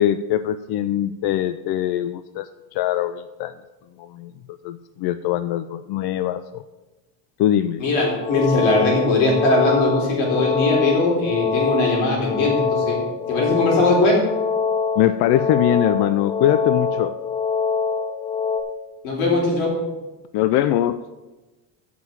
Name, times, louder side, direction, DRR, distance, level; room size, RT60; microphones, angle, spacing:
voice 1, 0.0-3.5 4.0-6.6 7.4-7.8 15.0-17.1 20.3-21.0, left 12 dB, 55° left, 12 dB, 0.5 m, -22 dB
voice 2, 7.8-13.0 13.3-14.2 19.0-19.7, left 2 dB, 75° left, -1 dB, 3.8 m, -20 dB
sound 1, 8.1-18.6, left 5 dB, 10° left, 0.8 m, -24 dB
7.7 x 6.0 x 7.3 m, 1.1 s
cardioid pair, 135°, 48 cm